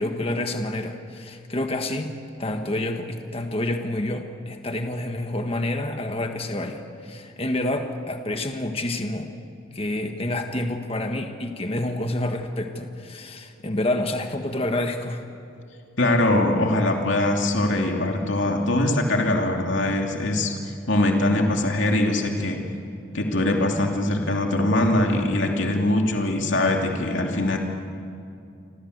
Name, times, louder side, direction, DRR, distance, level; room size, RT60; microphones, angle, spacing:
voice 1, 0.0-9.3 9.7-15.2, left 1 dB, 30° left, 5 dB, 1.5 m, -28 dB
voice 2, 16.0-20.6 20.9-22.6 23.1-27.6, left 1 dB, 65° left, 1 dB, 2.8 m, -22 dB
29.0 x 25.0 x 8.1 m, 2.6 s
head